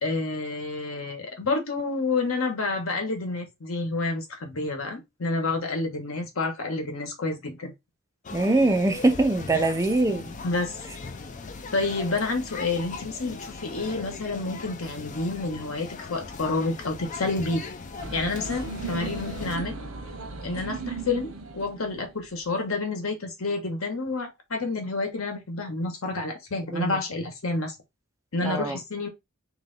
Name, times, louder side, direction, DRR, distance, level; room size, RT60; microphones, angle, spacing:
voice 1, 0.0-7.7 9.5-9.6 10.4-10.8 11.7-17.6 18.1-19.8 20.4-27.7 28.3-29.1, left 3 dB, 80° left, 1.2 m, -29 dB
sound 1, 8.2-19.6, left 4 dB, 35° left, 0.5 m, -39 dB
voice 2, 8.3-10.3 26.7-27.0 28.4-28.8, right 2 dB, 15° right, 0.5 m, -23 dB
sound 2, 18.0-22.4, right 3 dB, 75° right, 1.0 m, -36 dB
3.2 x 3.0 x 3.9 m
head